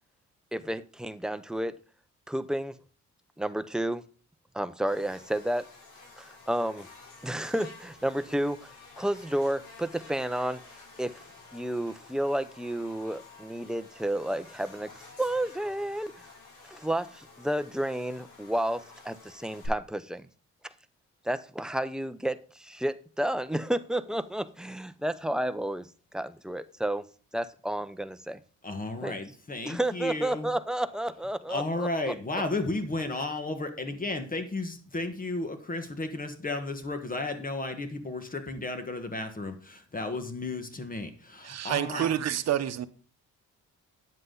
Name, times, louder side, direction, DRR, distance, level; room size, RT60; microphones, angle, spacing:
voice 1, 0.5-1.7 2.3-2.7 3.4-4.0 4.5-5.7 6.2-6.9 7.2-10.6 11.0-11.2 11.5-14.9 15.2-16.1 16.6-20.3 21.2-27.0 27.3-28.4 29.0-29.2 29.6-32.1, right 1 dB, ahead, 0.6 m, -31 dB
Buzz, 4.9-19.7, left 3 dB, 85° left, 5.0 m, -51 dB
voice 2, 28.6-30.5 31.5-42.1, left 2 dB, 30° left, 1.4 m, -33 dB
voice 3, 41.4-42.9, right 11 dB, 60° right, 0.9 m, -28 dB
9.6 x 7.7 x 3.9 m
cardioid pair, 90°, 30 cm